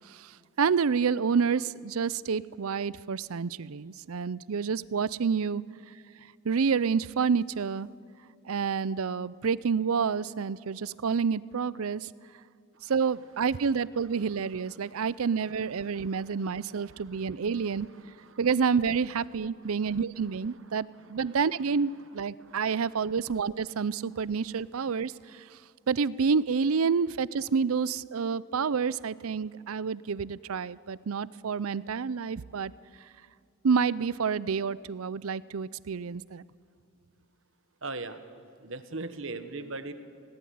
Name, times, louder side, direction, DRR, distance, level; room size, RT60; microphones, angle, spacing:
voice 1, 0.6-5.6 6.4-7.9 8.5-12.1 12.9-17.9 18.4-25.1 25.9-32.7 33.6-36.4, right 5 dB, 80° right, 20 dB, 0.5 m, -28 dB
voice 2, 15.8-18.4 19.8-20.0 21.0-21.4 22.4-23.0 37.8-38.2 38.6-39.9, right 3 dB, 65° right, 10 dB, 1.4 m, -42 dB
20.0 x 18.0 x 9.5 m, 2.4 s
head